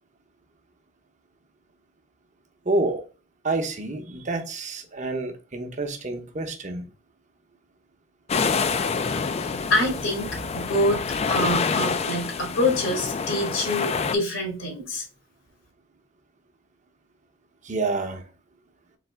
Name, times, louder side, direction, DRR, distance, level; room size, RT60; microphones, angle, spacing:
voice 1, 2.6-3.0 3.4-6.9 17.6-18.2, right 2 dB, 40° right, 0.8 m, -28 dB
sound 1, 8.3-14.1, left 5 dB, 35° left, 0.4 m, -27 dB
voice 2, 9.4-15.0, left 1 dB, 80° left, 2.0 m, -26 dB
4.0 x 3.3 x 3.3 m
head